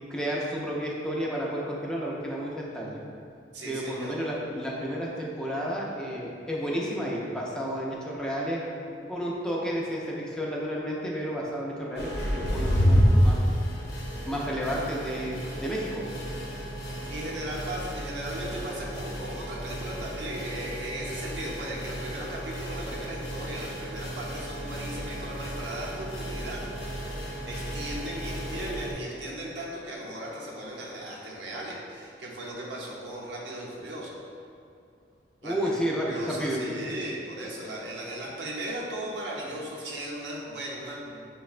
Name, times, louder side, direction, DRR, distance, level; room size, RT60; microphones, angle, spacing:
voice 1, 0.1-3.0 3.7-8.6 9.1-13.4 14.3-16.1 35.4-36.6, equal, 5° left, -4 dB, 0.4 m, -31 dB
voice 2, 3.5-4.2 17.1-26.6 27.3-34.1 35.4-41.3, right 1 dB, 75° right, -4 dB, 0.7 m, -37 dB
sound 1, 12.0-28.9, equal, 65° left, 0.7 m, -30 dB
5.7 x 2.1 x 2.4 m, 2.5 s
head